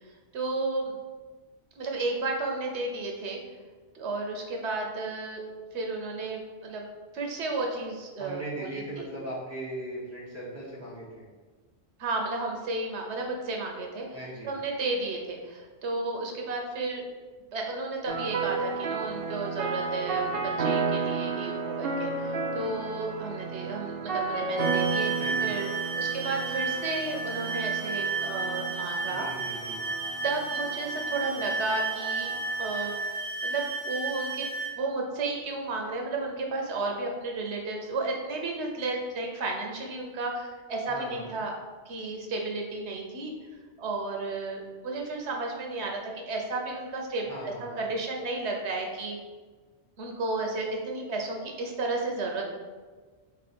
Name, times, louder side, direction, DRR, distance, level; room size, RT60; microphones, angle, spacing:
voice 1, 0.3-1.0 1.8-3.4 3.9-5.4 5.7-6.8 7.1-9.1 12.0-14.1 14.4-17.0 17.5-29.3 30.2-32.3 32.6-32.9 33.4-34.5 34.8-41.5 41.9-43.3 43.8-47.3 47.6-49.2 50.0-52.5, right 3 dB, 80° right, 1 dB, 1.1 m, -33 dB
voice 2, 8.2-11.2 14.1-14.5 25.2-25.5 29.1-29.8 40.9-41.3 47.2-47.9, right 1 dB, 15° right, -6 dB, 1.1 m, -39 dB
sound 1, 18.1-33.0, right 4 dB, 65° right, 0.8 m, -33 dB
sound 2, 24.6-34.7, right 4 dB, 70° left, 1.1 m, -32 dB
3.7 x 3.3 x 4.2 m, 1.4 s
omnidirectional pair, 1.1 m